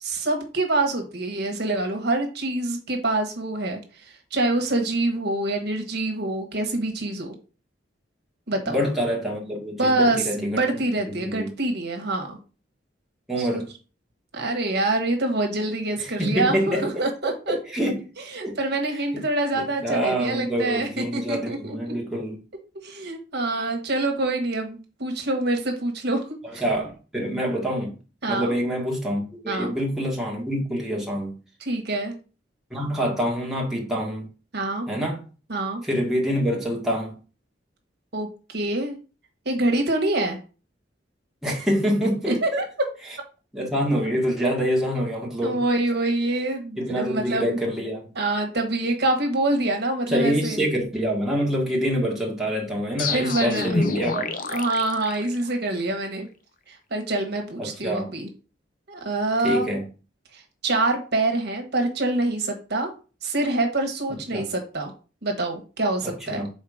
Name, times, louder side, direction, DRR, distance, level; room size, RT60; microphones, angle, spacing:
voice 1, 0.0-3.8 4.3-7.4 8.5-8.8 9.8-12.4 13.4-13.6 14.3-17.6 18.3-21.9 22.8-26.2 26.5-26.6 28.2-28.5 29.5-29.7 31.6-32.1 34.5-34.9 35.5-35.8 38.1-39.0 39.4-40.4 42.3-42.6 45.2-47.6 48.1-50.6 53.1-53.7 54.5-56.3 56.7-58.3 58.9-59.8 60.3-62.9 63.2-64.9 65.2-66.5, right 2 dB, 65° right, 1.4 m, -26 dB
voice 2, 8.7-10.6 11.1-11.5 13.3-13.7 16.0-16.9 17.2-18.1 18.4-18.6 19.1-19.2 19.6-22.4 26.6-27.9 28.3-31.4 32.7-34.3 34.9-35.2 35.8-37.2 41.4-42.6 43.5-45.6 46.8-48.1 50.1-54.2 57.6-58.1 59.4-59.8 64.3-64.5 66.0-66.5, equal, ahead, 1.7 m, -26 dB
sound 1, 53.0-55.8, left 3 dB, 50° left, 0.7 m, -28 dB
5.7 x 4.1 x 5.0 m
head